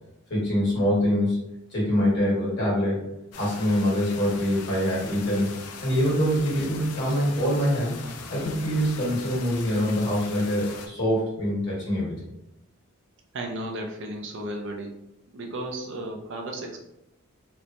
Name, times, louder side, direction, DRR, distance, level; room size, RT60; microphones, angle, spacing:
voice 1, 0.3-1.4 1.7-3.0 3.4-5.5 5.8-7.9 8.3-12.1, equal, 50° left, -6 dB, 1.3 m, -24 dB
sound 1, 3.3-10.9, left 5 dB, 90° left, 0.4 m, -41 dB
voice 2, 13.3-15.0 15.3-16.8, right 1 dB, 55° right, 2 dB, 0.4 m, -34 dB
2.9 x 2.1 x 2.5 m, 0.86 s
head